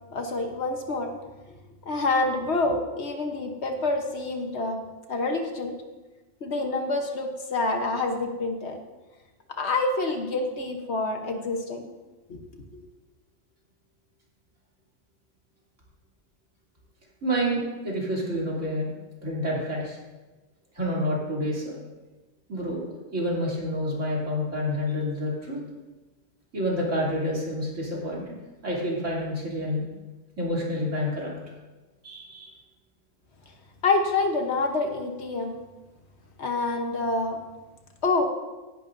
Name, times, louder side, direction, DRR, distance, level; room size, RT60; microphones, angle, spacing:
voice 1, 0.1-1.1 1.9-4.8 5.1-5.8 6.4-8.8 9.6-11.9 12.3-12.4 12.7-12.8 33.8-35.6 36.4-37.4 38.0-38.3, left 3 dB, 60° left, 4 dB, 1.3 m, -27 dB
voice 2, 17.2-18.9 19.2-20.0 20.8-21.7 22.5-25.6 26.5-28.4 28.6-29.8 30.4-31.3 32.0-32.5, equal, 65° right, -5 dB, 3.5 m, -28 dB
16.5 x 10.5 x 2.6 m, 1.2 s
omnidirectional pair, 1.3 m